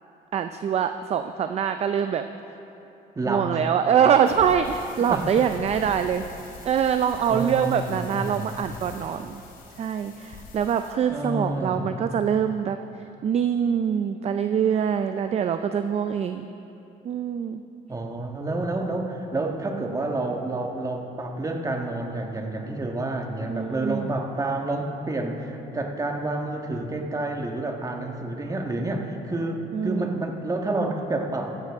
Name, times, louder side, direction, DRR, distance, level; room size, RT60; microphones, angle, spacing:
voice 1, 0.3-2.3 3.3-6.3 6.6-9.4 9.8-12.8 13.2-16.5 17.0-17.6 23.5-24.1 29.7-30.2, right 8 dB, 40° right, 9 dB, 0.4 m, -24 dB
voice 2, 3.1-3.6 5.1-5.3 7.3-8.5 11.1-11.9 17.9-31.5, right 2 dB, 20° right, 2 dB, 1.4 m, -29 dB
sound 1, 4.2-10.9, left 3 dB, 60° left, 2.7 m, -44 dB
15.0 x 14.0 x 3.6 m, 2.9 s
cardioid pair, 110°, 17 cm